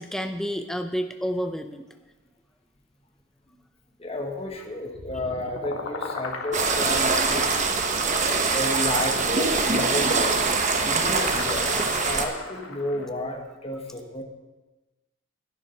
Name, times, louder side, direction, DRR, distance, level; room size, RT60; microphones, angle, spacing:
voice 1, 0.0-1.9 6.6-7.2 8.2-8.3, equal, ahead, 6 dB, 0.5 m, -31 dB
voice 2, 4.0-7.5 8.5-10.5 10.8-14.2, left 1 dB, 30° left, 2 dB, 1.4 m, -32 dB
sound 1, 4.9-13.1, left 3 dB, 80° left, 1.8 m, -38 dB
sound 2, 6.5-12.2, right 4 dB, 35° right, 1.1 m, -23 dB
11.0 x 9.8 x 5.8 m, 1.1 s
head